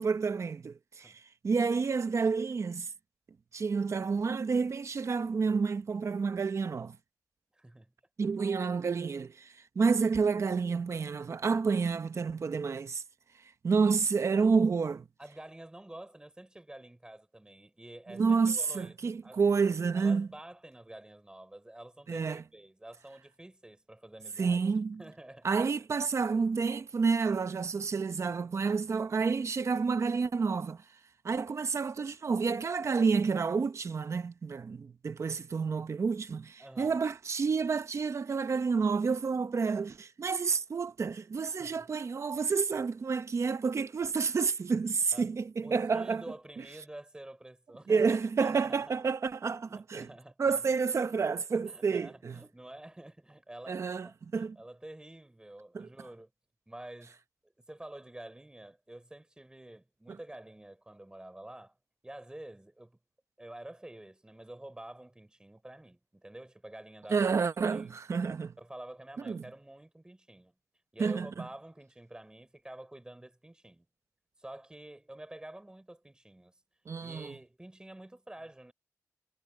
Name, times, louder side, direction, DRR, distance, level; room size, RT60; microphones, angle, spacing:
voice 1, 0.0-2.9 3.5-7.0 8.2-13.0 13.6-15.0 18.1-20.3 22.1-22.4 24.4-25.0 25.4-30.8 31.2-46.2 47.9-50.1 50.4-52.4 53.7-54.6 55.7-55.9 60.1-60.2 67.1-68.5 69.2-69.4 71.0-71.3 76.9-77.3, right 5 dB, 55° right, 0.9 m, -29 dB
voice 2, 7.5-7.9 14.4-14.5 15.2-19.4 19.9-24.6 25.0-25.6 36.6-37.0 41.5-41.9 45.1-45.3 45.6-48.9 49.7-50.6 51.7-56.3 56.7-57.2 57.4-61.8 62.0-63.0 63.4-67.3 67.7-68.0 68.6-70.5 70.9-73.9 74.4-76.5 77.0-78.7, right 1 dB, 15° right, 6.5 m, -49 dB
wide cardioid pair, 105°, 6 cm